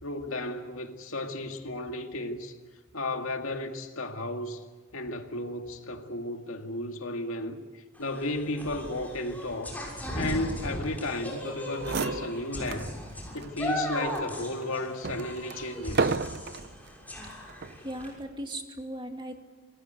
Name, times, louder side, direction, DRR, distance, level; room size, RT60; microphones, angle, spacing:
voice 1, 0.0-2.5 2.9-4.6 4.9-9.8 10.1-12.9 13.3-16.2, left 1 dB, 85° left, 2.1 m, -34 dB
sound 1, 8.0-18.1, equal, 10° left, 6.3 m, -37 dB
sound 2, 11.5-11.6 11.8-12.9 13.4-13.5 14.1-16.7 17.5-17.9, right 4 dB, 55° right, 0.7 m, -32 dB
voice 2, 17.8-19.4, right 1 dB, 25° right, 2.4 m, -37 dB
27.5 x 20.0 x 8.1 m
head